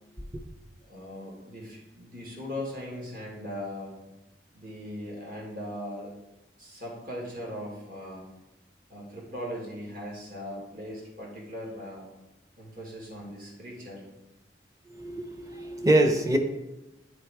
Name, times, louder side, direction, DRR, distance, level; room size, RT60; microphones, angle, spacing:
voice 1, 0.9-3.9 4.5-6.1 6.6-8.2 8.9-12.0 12.6-14.0, equal, 50° right, -3 dB, 1.9 m, -39 dB
voice 2, 14.9-16.4, right 1 dB, 20° right, 4 dB, 0.7 m, -24 dB
9.5 x 3.3 x 4.7 m, 1.0 s
head